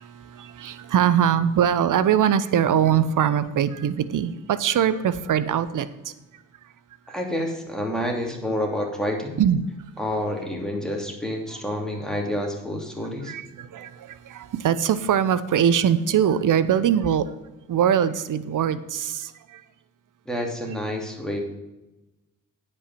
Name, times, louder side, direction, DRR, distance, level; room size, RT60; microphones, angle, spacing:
voice 1, 0.0-6.1 9.4-9.6 13.3-17.3 17.7-19.6, right 9 dB, 60° right, 15 dB, 0.8 m, -22 dB
voice 2, 7.1-9.4 10.0-13.3 20.3-21.4, left 1 dB, ahead, 0 dB, 2.9 m, -28 dB
9.5 x 5.6 x 7.6 m, 1.0 s
cardioid pair, 70°, 34 cm